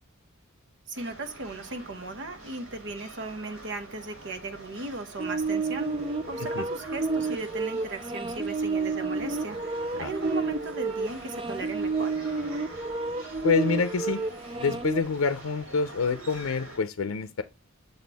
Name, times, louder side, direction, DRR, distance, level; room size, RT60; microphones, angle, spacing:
voice 1, 0.9-12.1, right 2 dB, 60° right, 1.0 m, -37 dB
sound 1, 0.9-16.8, right 2 dB, 85° right, 3.6 m, -46 dB
sound 2, 5.2-15.0, right 3 dB, 25° right, 0.5 m, -30 dB
voice 2, 13.4-14.2 14.6-17.4, left 5 dB, 80° left, 0.5 m, -27 dB
6.7 x 4.2 x 3.4 m
head